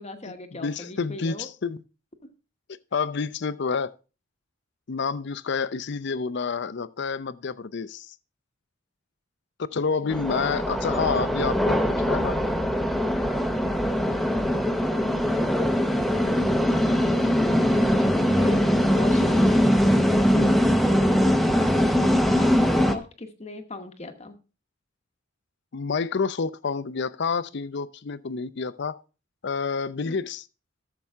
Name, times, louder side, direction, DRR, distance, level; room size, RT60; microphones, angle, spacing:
voice 1, 0.0-1.5 2.2-2.3 10.0-10.4 16.5-18.6 19.0-19.8 22.3-24.4 30.0-30.2, left 2 dB, 35° left, 1.0 m, -39 dB
voice 2, 0.5-1.8 2.9-3.9 4.9-8.1 9.6-12.4 20.3-20.6 25.7-29.0 29.4-30.4, left 5 dB, 60° left, 0.5 m, -29 dB
sound 1, 10.1-22.9, equal, ahead, 0.7 m, -22 dB
13.0 x 6.9 x 3.5 m
head